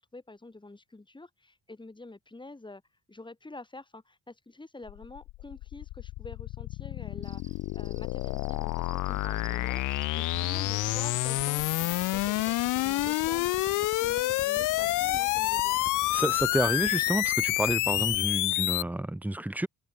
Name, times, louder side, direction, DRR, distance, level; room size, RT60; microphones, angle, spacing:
voice 1, 0.0-2.8 3.1-15.8, left 2 dB, 15° left, 4.6 m, -48 dB
sound 1, 4.9-18.8, left 19 dB, 85° left, 0.6 m, -28 dB
Cricket, 7.2-13.2, right 4 dB, 25° right, 4.1 m, -54 dB
sound 2, 10.2-18.8, right 8 dB, 40° right, 1.1 m, -47 dB
voice 2, 16.1-19.7, right 1 dB, 5° right, 0.8 m, -30 dB
open air
cardioid pair, 90°, 30 cm